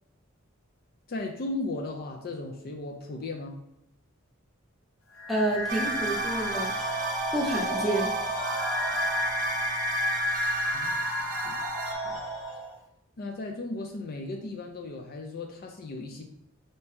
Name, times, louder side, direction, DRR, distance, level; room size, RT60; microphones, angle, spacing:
voice 1, 1.1-3.6 10.7-11.6 12.0-12.2 13.2-16.2, left 2 dB, 45° left, 3 dB, 0.4 m, -36 dB
sound 1, 5.2-12.8, left 1 dB, 80° left, 0.8 m, -31 dB
voice 2, 5.3-6.7 7.3-8.1, right 1 dB, ahead, -3 dB, 0.7 m, -28 dB
sound 2, 5.7-11.9, right 4 dB, 40° right, 0.3 m, -34 dB
4.4 x 2.7 x 3.4 m, 0.78 s
head